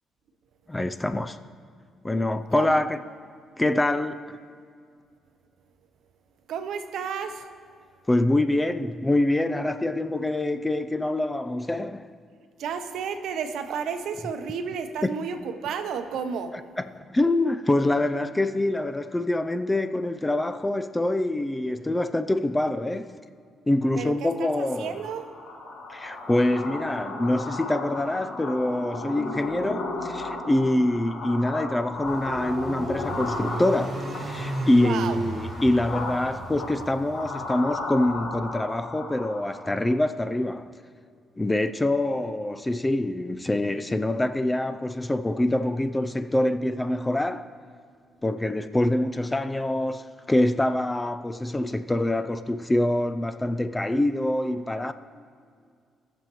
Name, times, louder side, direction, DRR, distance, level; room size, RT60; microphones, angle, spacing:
voice 1, 0.7-1.4 2.0-3.0 3.6-4.4 8.1-12.1 15.0-15.2 16.8-23.1 23.7-25.0 25.9-40.7 41.4-47.5 48.2-54.9, left 1 dB, 15° left, 0.4 m, -25 dB
voice 2, 6.5-7.5 12.6-16.5 24.0-25.3 34.8-35.2, right 6 dB, 80° right, 0.7 m, -32 dB
sound 1, 24.6-39.9, left 2 dB, 65° left, 1.7 m, -35 dB
sound 2, 32.1-37.5, right 3 dB, 40° right, 0.7 m, -35 dB
18.5 x 7.1 x 3.0 m
cardioid pair, 90°, 0 cm